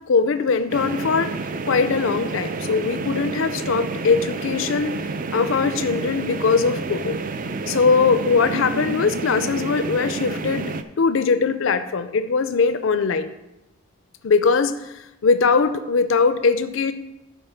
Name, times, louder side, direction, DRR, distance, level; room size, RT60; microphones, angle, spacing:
voice 1, 0.1-1.3 1.6-4.9 5.3-7.2 7.7-10.7 11.0-13.3 14.2-14.9 15.2-16.9, left 4 dB, 75° left, 11 dB, 0.5 m, -21 dB
sound 1, 0.7-10.8, right 3 dB, 40° right, 0.4 m, -29 dB
11.0 x 4.5 x 5.7 m, 0.95 s
head